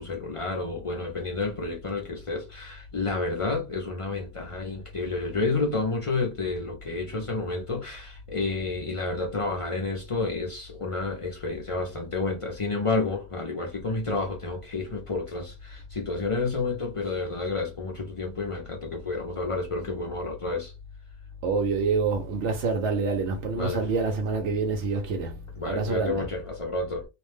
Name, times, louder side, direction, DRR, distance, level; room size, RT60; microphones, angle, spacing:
voice 1, 0.0-20.7 23.6-23.8 25.6-27.0, left 3 dB, 40° left, 0.5 m, -30 dB
voice 2, 21.4-26.4, right 4 dB, 75° right, 0.9 m, -27 dB
2.4 x 2.1 x 3.1 m
omnidirectional pair, 1.2 m